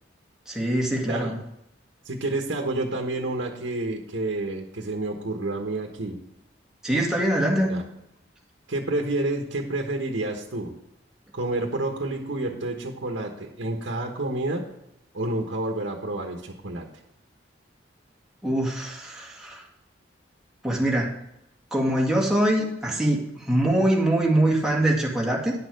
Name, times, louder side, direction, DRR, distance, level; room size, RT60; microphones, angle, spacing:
voice 1, 0.5-1.3 6.8-7.7 18.4-19.6 20.6-21.1 21.7-25.5, right 1 dB, 5° right, -2 dB, 2.0 m, -23 dB
voice 2, 2.0-6.2 7.6-7.8 8.7-10.7 11.3-14.6 15.1-16.9, right 2 dB, 85° right, 1 dB, 1.3 m, -29 dB
10.5 x 6.6 x 5.2 m, 0.82 s
head